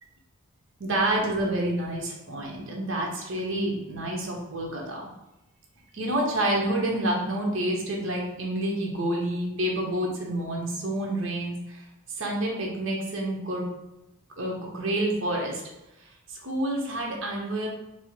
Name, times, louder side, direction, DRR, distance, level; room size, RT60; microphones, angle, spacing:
voice 1, 0.8-5.1 5.9-11.9 12.2-13.7 14.4-15.6 16.0-17.7, right 1 dB, 60° right, -1 dB, 1.0 m, -28 dB
4.4 x 2.0 x 4.5 m, 0.93 s
head